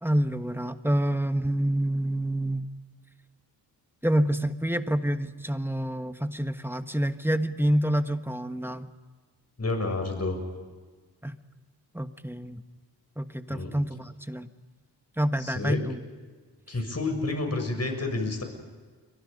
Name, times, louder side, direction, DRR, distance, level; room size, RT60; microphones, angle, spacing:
voice 1, 0.0-2.7 4.0-8.9 11.2-11.3 11.9-12.6 13.2-14.5 15.2-16.0, right 1 dB, 5° right, 8 dB, 1.4 m, -27 dB
voice 2, 9.6-10.4 13.5-13.7 15.4-15.8 16.7-18.4, left 2 dB, 40° left, 4 dB, 7.2 m, -29 dB
29.5 x 23.5 x 5.4 m, 1.5 s
cardioid pair, 60°, 41 cm